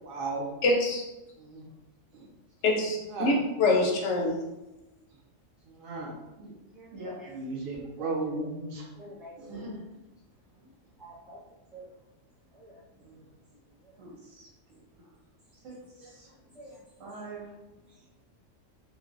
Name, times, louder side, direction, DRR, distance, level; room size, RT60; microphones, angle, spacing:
voice 1, 0.0-0.5 2.1-2.3 3.1-3.3 5.7-6.1 7.3-8.9 9.4-9.6 13.1-13.2, right 3 dB, 60° right, -1 dB, 0.6 m, -34 dB
voice 2, 0.6-1.0 2.6-4.4, left 2 dB, 70° left, 1 dB, 0.8 m, -25 dB
voice 3, 6.7-7.3 8.0-8.1 9.0-9.5 10.5-11.4 11.7-11.9 12.5-13.3 13.8-14.0 15.7-17.0 17.9-18.2, right 1 dB, ahead, -8 dB, 0.5 m, -51 dB
voice 4, 9.5-9.8 14.0-14.5 15.0-15.1 15.6-16.3 17.0-17.5, right 2 dB, 90° right, -5 dB, 1.3 m, -43 dB
3.1 x 2.1 x 2.4 m, 1.0 s
omnidirectional pair, 1.3 m